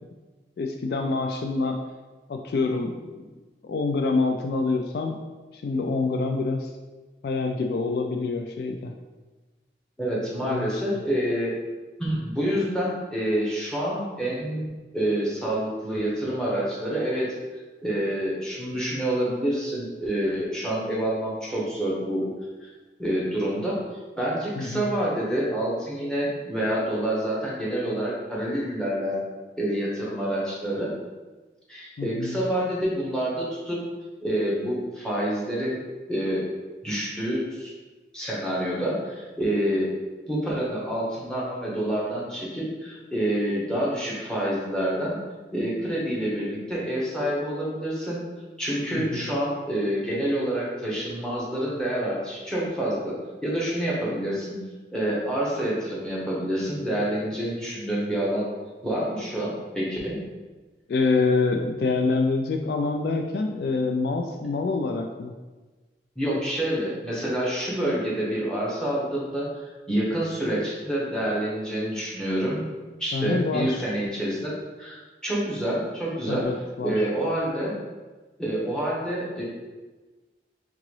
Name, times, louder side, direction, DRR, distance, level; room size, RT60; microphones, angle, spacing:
voice 1, 0.6-1.8 2.3-3.2 3.6-5.2 5.5-6.7 7.2-8.9 10.4-10.8 24.6-24.9 32.0-32.4 48.9-49.3 60.9-65.3 73.1-73.8 76.2-77.1, left 3 dB, 65° left, 4 dB, 0.3 m, -26 dB
voice 2, 10.0-11.5 12.0-17.3 17.8-22.2 22.6-22.7 23.0-23.8 24.2-29.2 29.6-30.9 31.7-33.8 34.2-35.8 36.1-36.4 36.8-37.7 38.1-39.9 40.3-45.2 45.5-48.2 48.6-54.5 54.9-58.5 58.8-60.2 66.2-72.6 73.0-76.5 76.8-77.7 78.4-79.4, right 1 dB, 5° left, -6 dB, 0.9 m, -27 dB
3.8 x 3.6 x 3.2 m, 1.3 s
head